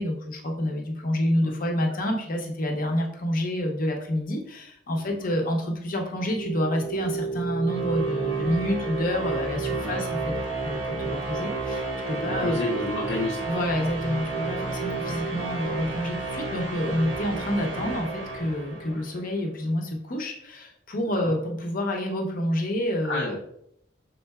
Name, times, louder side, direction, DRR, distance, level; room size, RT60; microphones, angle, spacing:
voice 1, 0.0-12.6 13.5-23.4, left 1 dB, 50° left, 2 dB, 0.7 m, -28 dB
voice 2, 4.9-5.3 9.8-10.0 12.1-13.6 18.9-19.0 21.2-21.3 23.0-23.4, left 2 dB, 85° left, -3 dB, 0.6 m, -31 dB
sound 1, 6.1-19.2, right 3 dB, 90° right, 1.2 m, -31 dB
5.4 x 3.7 x 2.3 m, 0.73 s
head